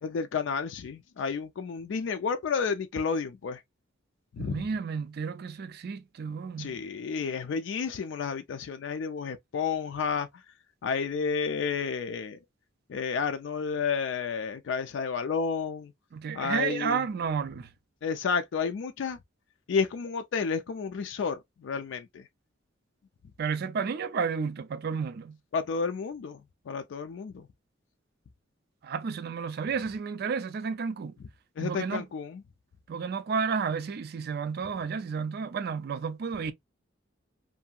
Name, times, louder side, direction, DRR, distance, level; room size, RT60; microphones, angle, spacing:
voice 1, 0.0-3.6 4.3-4.6 6.6-10.4 10.8-12.4 12.9-15.9 16.3-17.0 18.0-19.2 19.7-22.3 25.5-27.5 31.6-32.4, left 5 dB, 70° left, 0.3 m, -31 dB
voice 2, 4.4-6.8 16.1-17.7 23.4-25.4 28.8-31.1 31.6-32.1 32.9-36.5, right 6 dB, 55° right, 0.4 m, -31 dB
2.7 x 2.6 x 2.2 m
head